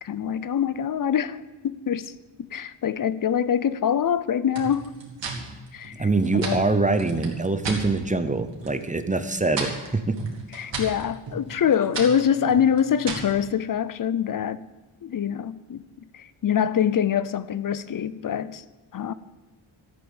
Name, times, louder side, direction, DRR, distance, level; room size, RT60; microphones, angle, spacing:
voice 1, 0.0-2.1 2.5-4.9 5.7-6.6 10.5-14.6 15.0-15.8 16.1-18.7 18.9-19.1, left 8 dB, 45° left, 0.6 m, -25 dB
sound 1, 4.5-7.8 8.2-8.8 9.1-13.4, right 3 dB, 60° right, 2.9 m, -35 dB
voice 2, 6.0-10.2, right 3 dB, 15° right, 0.7 m, -24 dB
14.5 x 8.8 x 7.1 m
wide cardioid pair, 160°, 49 cm